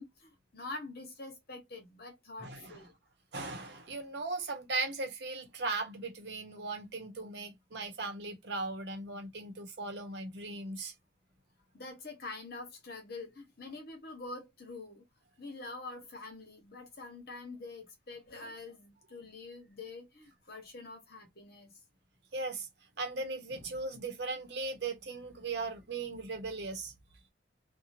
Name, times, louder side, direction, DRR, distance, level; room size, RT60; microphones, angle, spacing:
voice 1, 0.0-3.0 11.7-15.0 15.4-21.7, left 3 dB, 55° left, 1.1 m, -46 dB
voice 2, 2.4-2.8 3.3-10.9 22.3-22.7 23.0-26.9, right 3 dB, 65° right, 0.8 m, -38 dB
2.8 x 2.3 x 2.6 m
head